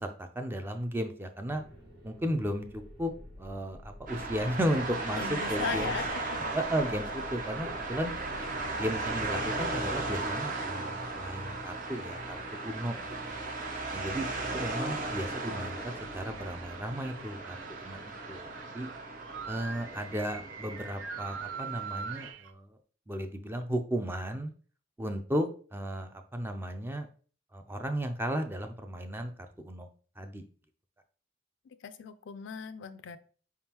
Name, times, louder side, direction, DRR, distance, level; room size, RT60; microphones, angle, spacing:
voice 1, 0.0-1.6 2.0-3.1 3.4-5.9 6.5-8.1 8.7-13.4 13.9-14.3 14.5-18.0 18.3-18.5 18.7-18.9 19.5-22.8 23.1-24.5 25.0-27.1 27.5-29.3 29.6-29.9 30.2-30.4, equal, 10° right, 6 dB, 0.4 m, -34 dB
sound 1, 1.4-10.2, left 1 dB, 70° right, 1.7 m, -50 dB
sound 2, 4.1-22.3, right 2 dB, 45° right, 0.8 m, -36 dB
voice 2, 5.1-6.4 31.7-33.2, left 6 dB, 70° left, 12 dB, 0.4 m, -38 dB
sound 3, 7.2-22.5, right 6 dB, 85° right, 0.4 m, -46 dB
4.8 x 3.6 x 2.9 m, 0.41 s
head